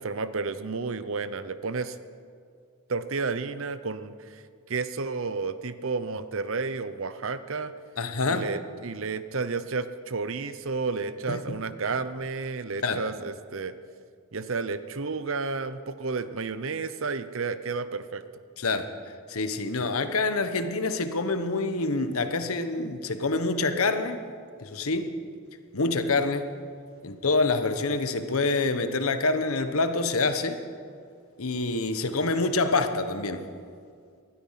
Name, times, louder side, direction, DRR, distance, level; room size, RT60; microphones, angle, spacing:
voice 1, 0.0-2.0 2.9-4.4 4.7-7.7 8.3-13.7 14.3-18.2, right 4 dB, 60° right, 13 dB, 0.7 m, -31 dB
voice 2, 8.0-8.5 11.3-11.6 12.8-13.0 18.6-18.9 19.3-24.2 24.6-25.1 25.7-26.5 27.0-30.6 31.4-33.5, left 3 dB, 75° left, 9 dB, 1.1 m, -26 dB
19.0 x 13.0 x 5.8 m, 2.2 s
head